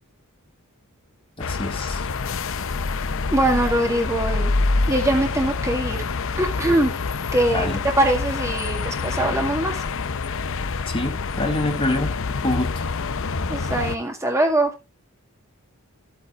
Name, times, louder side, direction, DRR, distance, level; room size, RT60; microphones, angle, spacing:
sound 1, 1.4-14.0, left 4 dB, 65° left, 0.7 m, -26 dB
voice 1, 1.4-2.1 7.5-7.8 10.9-12.7, left 2 dB, 25° left, 2.0 m, -26 dB
voice 2, 2.9-4.6 4.9-6.0 6.4-7.0 7.3-7.7 8.0-9.8 13.5-14.7, right 1 dB, 15° right, 1.9 m, -22 dB
14.5 x 8.4 x 2.4 m
head